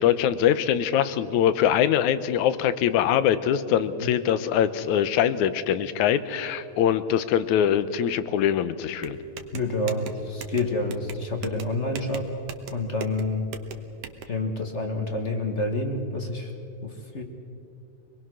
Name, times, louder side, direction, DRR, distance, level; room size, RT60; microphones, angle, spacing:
voice 1, 0.0-9.2, left 9 dB, 85° left, 13 dB, 2.2 m, -23 dB
sound 1, 9.0-14.2, right 7 dB, 65° right, 1.9 m, -40 dB
voice 2, 9.5-12.3 12.7-13.5 14.3-16.5 16.8-17.2, left 2 dB, 35° left, 4 dB, 1.1 m, -28 dB
25.0 x 20.5 x 6.3 m, 2.6 s
omnidirectional pair, 3.4 m